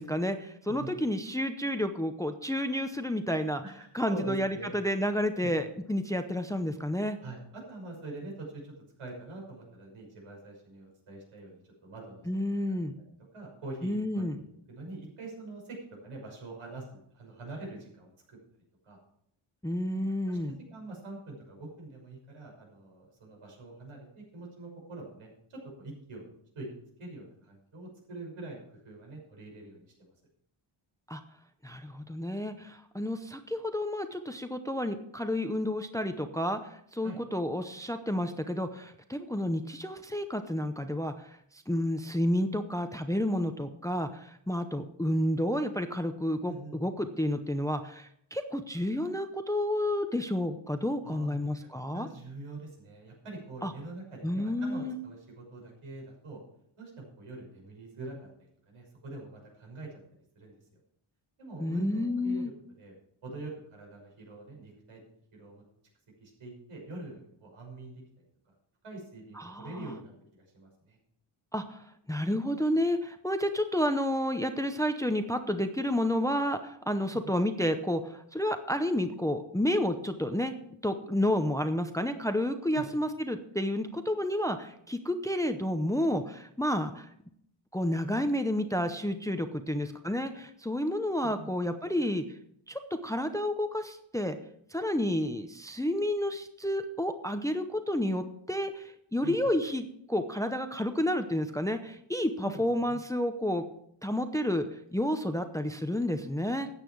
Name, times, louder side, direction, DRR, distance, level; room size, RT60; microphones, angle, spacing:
voice 1, 0.0-3.6 3.9-7.2 12.3-13.0 13.8-14.4 19.6-20.6 31.1-31.2 31.6-41.4 41.7-52.1 53.6-53.7 54.2-55.0 61.6-62.5 69.4-69.9 71.5-80.5 80.8-87.1 87.7-92.2 92.7-94.4 94.7-103.6 104.0-104.6 104.9-106.7, left 1 dB, 5° left, 8 dB, 0.6 m, -30 dB
voice 2, 3.6-4.7 5.3-5.5 7.2-7.4 7.7-8.7 9.0-12.8 13.3-18.4 18.8-19.0 20.3-20.4 20.7-26.7 27.0-30.1 37.0-37.2 46.4-46.8 51.0-51.7 51.9-56.4 56.8-59.9 60.3-60.5 61.4-62.5 62.8-62.9 63.2-65.0 65.3-65.6 66.2-68.5 68.8-71.0 77.1-77.3 82.7-82.9 91.2-91.5 99.2-99.5 102.4-103.0, right 2 dB, 85° right, -1 dB, 6.1 m, -44 dB
13.5 x 9.0 x 4.6 m, 0.70 s
wide cardioid pair, 150°, 50 cm